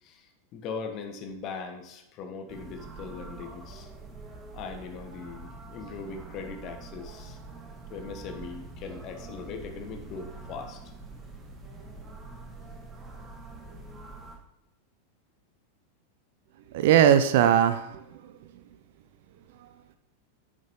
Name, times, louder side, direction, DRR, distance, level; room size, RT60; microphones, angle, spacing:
voice 1, 0.0-3.9 4.5-7.4 7.9-10.9, left 5 dB, 35° left, 6 dB, 1.3 m, -40 dB
sound 1, 2.5-14.4, right 3 dB, 20° right, 1.9 m, -45 dB
voice 2, 16.7-18.3, right 9 dB, 50° right, 10 dB, 0.6 m, -20 dB
10.5 x 9.9 x 3.1 m, 0.85 s
figure-of-eight pair, 90°, 0 cm